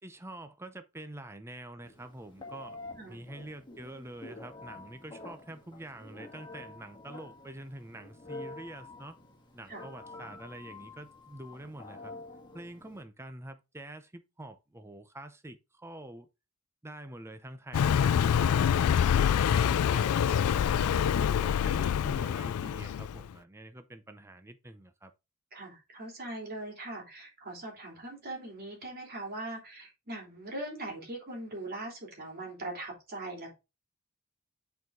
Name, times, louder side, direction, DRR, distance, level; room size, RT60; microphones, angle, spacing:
voice 1, 0.0-2.8 3.1-9.2 9.5-12.1 12.5-16.3 16.8-19.1 19.5-25.1, right 1 dB, 10° right, 0.6 m, -46 dB
Telephone, 1.8-13.0, left 2 dB, 20° left, 1.8 m, -48 dB
Car passing by, 17.7-23.3, left 8 dB, 75° left, 0.3 m, -26 dB
voice 2, 25.5-33.5, right 2 dB, 45° right, 3.5 m, -41 dB
8.1 x 4.7 x 3.7 m
head